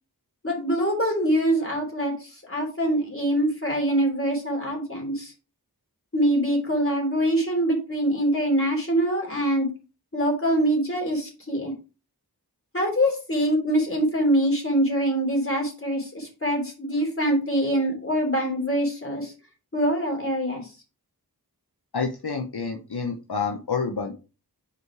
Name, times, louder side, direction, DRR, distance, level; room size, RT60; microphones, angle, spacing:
voice 1, 0.4-5.3 6.1-9.7 10.1-11.7 12.7-19.3 19.7-20.6, right 1 dB, 35° left, 0 dB, 3.2 m, -24 dB
voice 2, 21.9-24.1, left 5 dB, 70° left, 3 dB, 0.9 m, -28 dB
5.0 x 4.8 x 4.7 m, 0.32 s
wide cardioid pair, 40°, 39 cm